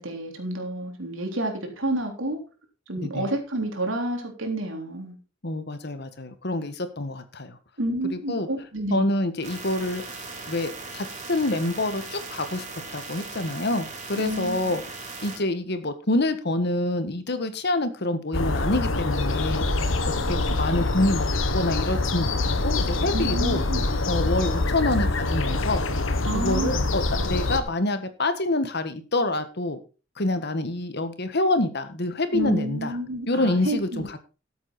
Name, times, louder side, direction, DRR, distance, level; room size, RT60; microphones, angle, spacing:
voice 1, 0.0-2.4 2.9-5.2 7.8-9.1 14.2-14.8 23.1-23.8 26.2-26.8 32.3-34.2, right 1 dB, 75° right, 4 dB, 3.6 m, -29 dB
voice 2, 5.4-7.6 8.1-8.5 8.9-10.2 10.5-12.7 12.9-14.8 15.2-19.6 20.3-23.6 24.1-25.8 26.3-29.8 30.2-32.9 33.3-34.2, left 2 dB, 55° left, 10 dB, 1.6 m, -27 dB
sound 1, 9.4-15.4, right 3 dB, 35° right, 3.5 m, -38 dB
sound 2, 18.3-27.6, left 2 dB, 75° left, 1.6 m, -25 dB
13.0 x 8.5 x 4.3 m, 0.32 s
head